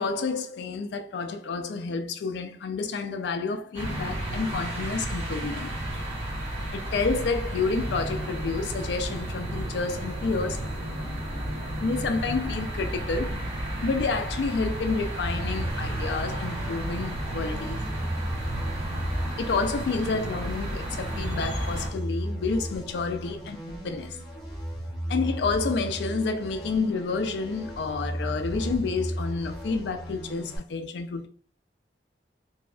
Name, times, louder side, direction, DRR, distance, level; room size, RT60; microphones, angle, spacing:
voice 1, 0.0-5.8 6.7-10.7 11.8-13.4 13.8-17.8 19.3-24.2 25.1-31.3, left 4 dB, 70° left, 0.4 m, -29 dB
sound 1, 3.7-21.9, right 1 dB, 35° right, 0.9 m, -32 dB
sound 2, 15.2-30.6, equal, ahead, 1.0 m, -35 dB
2.7 x 2.3 x 2.3 m
head